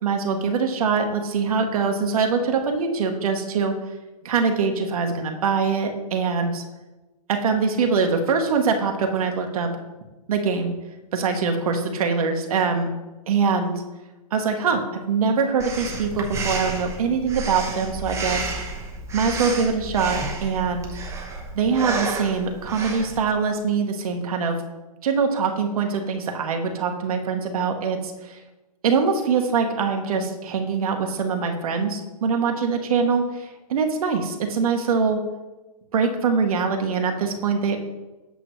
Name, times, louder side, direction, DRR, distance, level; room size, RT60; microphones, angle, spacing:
voice 1, 0.0-3.7 4.2-6.6 7.3-9.7 10.3-10.7 11.1-12.9 13.3-13.7 14.3-18.5 19.1-20.9 21.5-24.6 25.0-28.4 28.8-35.2 35.9-37.8, right 5 dB, 65° right, 4 dB, 1.0 m, -23 dB
Breathing, 15.6-23.2, right 3 dB, 15° right, 0.8 m, -31 dB
8.2 x 6.1 x 3.1 m, 1.1 s
hypercardioid pair, 125°, 20 cm